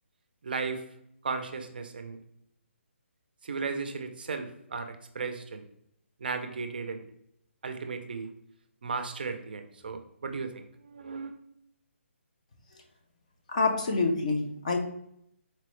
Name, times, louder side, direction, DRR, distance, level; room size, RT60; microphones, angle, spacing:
voice 1, 0.4-0.9 1.2-2.2 3.4-5.6 6.2-7.0 7.6-8.3 8.8-11.4, right 4 dB, 45° right, 7 dB, 0.4 m, -35 dB
voice 2, 13.5-14.8, left 3 dB, 30° left, 3 dB, 0.4 m, -27 dB
4.2 x 2.0 x 3.0 m, 0.74 s
hypercardioid pair, 175°, 7 cm